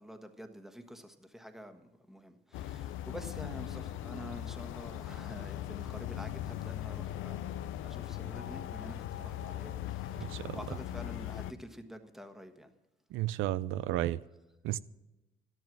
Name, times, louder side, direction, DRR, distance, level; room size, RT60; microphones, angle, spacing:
voice 1, 0.0-7.5 7.8-12.7, equal, ahead, 1.4 m, -48 dB
sound 1, 2.5-11.5, left 12 dB, 90° left, 0.6 m, -39 dB
voice 2, 10.2-10.6 13.1-14.2 14.6-14.8, right 14 dB, 90° right, 0.4 m, -32 dB
12.0 x 10.5 x 6.1 m
cardioid pair, 90°, 20 cm